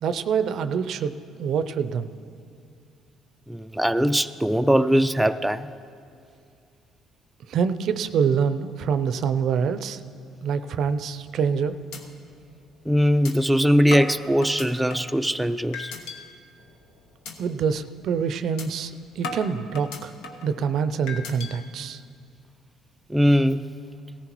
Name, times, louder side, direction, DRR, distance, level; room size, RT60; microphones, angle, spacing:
voice 1, 0.0-1.1 1.4-2.1 7.5-10.0 10.4-11.7 17.4-20.1 20.4-22.0, right 6 dB, 65° right, 12 dB, 0.5 m, -25 dB
voice 2, 3.5-5.7 12.9-15.9 23.1-23.7, equal, 5° right, 9 dB, 0.3 m, -21 dB
sound 1, 11.3-11.6 11.9-12.0 12.4-12.5 13.2-13.3 13.9-15.2 15.7-16.2 16.6-16.8 17.2-17.4 17.8-17.9 18.6-18.7 19.2-20.5 21.1-21.5, left 3 dB, 85° left, 1.0 m, -36 dB
17.0 x 14.5 x 3.0 m, 2.4 s
supercardioid pair, 85°, 0 cm